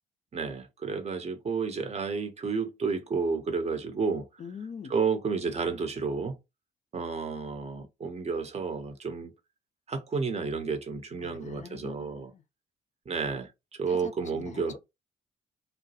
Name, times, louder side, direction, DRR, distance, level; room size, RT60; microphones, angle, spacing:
voice 1, 0.3-4.3 4.9-6.4 6.9-9.3 9.9-12.3 13.1-13.5 13.8-14.8, right 5 dB, 35° right, 0.8 m, -31 dB
voice 2, 4.4-4.9 11.2-12.4 13.9-14.8, left 6 dB, 40° left, 0.4 m, -44 dB
2.2 x 2.0 x 2.7 m
hypercardioid pair, 50°, 18 cm